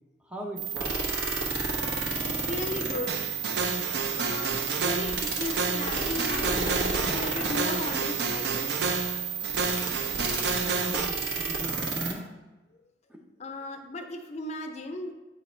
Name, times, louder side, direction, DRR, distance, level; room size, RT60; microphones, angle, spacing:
voice 1, 0.3-1.2 10.8-12.3 13.1-13.2, equal, 5° right, 2 dB, 0.6 m, -39 dB
sound 1, 0.6-12.1, right 5 dB, 85° right, 1.0 m, -31 dB
voice 2, 2.2-3.2 4.1-6.6 7.1-8.9 13.4-15.1, left 2 dB, 40° left, 5 dB, 0.6 m, -36 dB
sound 2, 3.1-11.1, right 4 dB, 65° right, 0.4 m, -30 dB
7.9 x 2.8 x 4.3 m, 1.1 s
head